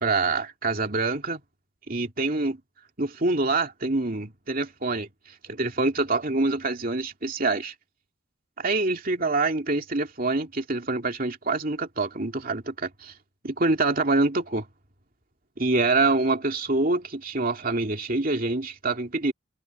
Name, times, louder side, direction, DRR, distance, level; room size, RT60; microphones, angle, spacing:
voice 1, 0.0-1.4 1.9-2.6 3.0-5.1 5.4-7.7 8.6-13.1 13.4-14.7 15.6-19.3, right 3 dB, 40° right, 2.6 m, -25 dB
head